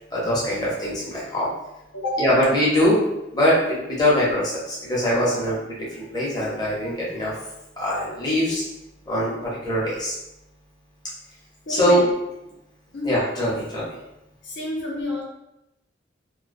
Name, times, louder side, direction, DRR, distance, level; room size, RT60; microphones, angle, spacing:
voice 1, 0.1-1.5 2.2-3.0 3.3-7.3 7.8-8.6 9.1-10.1 11.7-12.0 13.0-13.9, equal, 20° left, -7 dB, 0.7 m, -22 dB
voice 2, 1.9-2.6 11.7-12.1 12.5-12.6 12.9-13.2 14.4-15.2, left 1 dB, 65° left, -3 dB, 0.6 m, -29 dB
2.3 x 2.2 x 2.5 m, 0.90 s
head